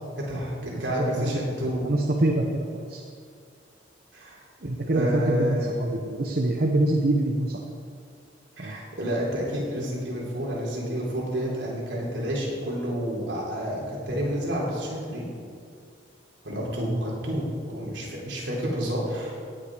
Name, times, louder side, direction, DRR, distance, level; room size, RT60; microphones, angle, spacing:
voice 1, 0.2-1.8 4.1-4.4 4.8-5.8 8.6-15.3 16.4-19.5, equal, 70° right, -4 dB, 4.0 m, -29 dB
voice 2, 1.0-1.5 1.8-3.0 4.6-7.6 8.6-8.8 16.8-17.0, right 2 dB, 55° right, 1 dB, 0.9 m, -25 dB
17.5 x 8.7 x 5.0 m, 2.3 s
head